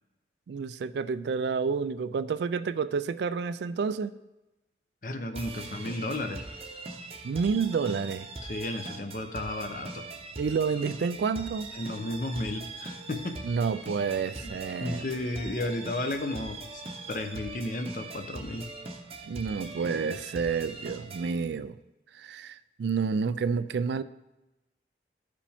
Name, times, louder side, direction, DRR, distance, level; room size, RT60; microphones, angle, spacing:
voice 1, 0.5-4.1 7.2-8.3 10.4-11.7 13.4-15.1 19.3-21.8 22.1-24.0, right 5 dB, 70° right, 0.3 m, -29 dB
voice 2, 5.0-6.4 8.4-10.0 11.7-13.4 14.4-14.5 14.8-18.7, left 1 dB, 45° left, 0.7 m, -33 dB
sound 1, 5.3-21.3, right 3 dB, 30° right, 0.7 m, -41 dB
14.5 x 5.0 x 3.5 m
head